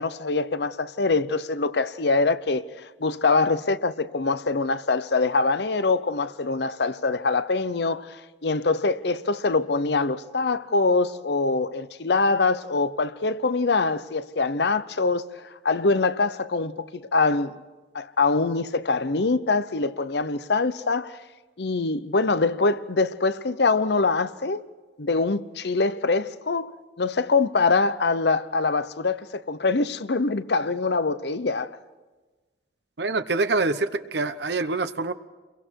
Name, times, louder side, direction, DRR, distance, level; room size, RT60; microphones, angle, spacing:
voice 1, 0.0-15.3 15.6-17.6 17.9-21.2 21.6-24.6 25.0-26.7 27.0-31.7, left 3 dB, 65° left, 0.8 m, -24 dB
voice 2, 33.0-35.1, right 3 dB, 65° right, 0.9 m, -25 dB
29.5 x 23.0 x 4.7 m
head